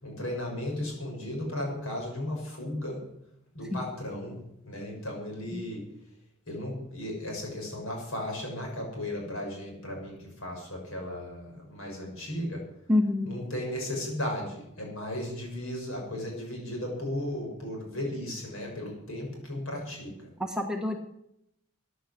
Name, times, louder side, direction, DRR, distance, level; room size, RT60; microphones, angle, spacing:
voice 1, 0.0-3.0 3.5-4.4 4.6-5.8 6.5-12.6 13.2-20.1, left 1 dB, 65° left, 0 dB, 6.9 m, -35 dB
voice 2, 12.9-13.3 20.4-21.0, left 2 dB, 5° right, 3 dB, 1.2 m, -27 dB
14.5 x 10.0 x 8.1 m, 0.79 s
head